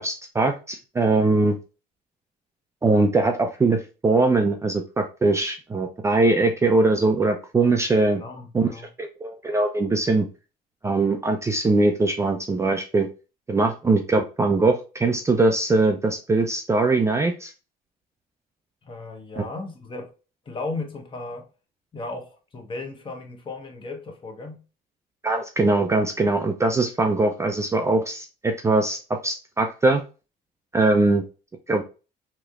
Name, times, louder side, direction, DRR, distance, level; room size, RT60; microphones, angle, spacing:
voice 1, 0.0-1.6 2.8-8.2 8.5-10.3 10.8-13.1 13.5-17.5 19.4-19.5 25.2-29.0 29.2-30.0 30.7-31.2 31.7-31.8, right 2 dB, 15° right, 0.4 m, -21 dB
voice 2, 8.1-8.9 18.8-20.1 20.5-21.4 21.9-24.6, left 3 dB, 30° left, 0.9 m, -35 dB
3.1 x 2.8 x 2.4 m
cardioid pair, 110°, 17 cm